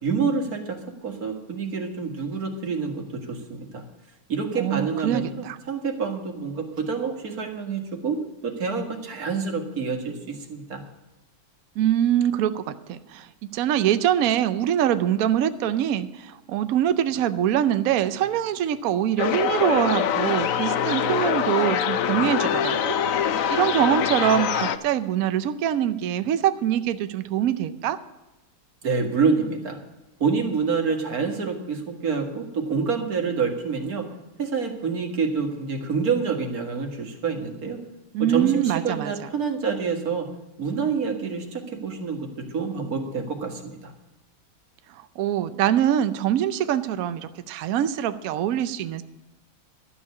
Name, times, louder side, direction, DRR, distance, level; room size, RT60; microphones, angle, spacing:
voice 1, 0.0-3.8 4.3-8.2 8.4-10.8 28.8-29.8 30.2-34.1 34.4-37.8 38.2-40.3 40.6-42.3 42.5-43.9, right 5 dB, 45° right, 3 dB, 2.1 m, -27 dB
voice 2, 4.6-5.6 11.8-13.3 13.5-23.0 23.5-28.0 38.1-39.3 44.9-49.0, right 10 dB, 85° right, 11 dB, 0.7 m, -24 dB
sound 1, 19.2-24.8, left 8 dB, 80° left, 0.7 m, -24 dB
12.5 x 7.1 x 8.4 m, 1.0 s
omnidirectional pair, 2.2 m